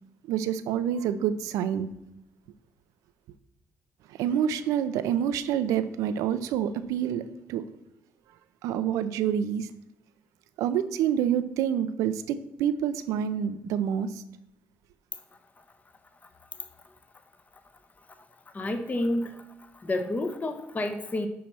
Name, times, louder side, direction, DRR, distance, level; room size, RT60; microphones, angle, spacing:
voice 1, 0.3-1.9 4.1-7.6 8.6-9.7 10.6-14.2, right 9 dB, 90° right, 0.5 m, -27 dB
voice 2, 18.5-19.4 19.7-21.3, left 1 dB, 30° left, 0.8 m, -29 dB
9.3 x 3.1 x 5.9 m
supercardioid pair, 70°, 5 cm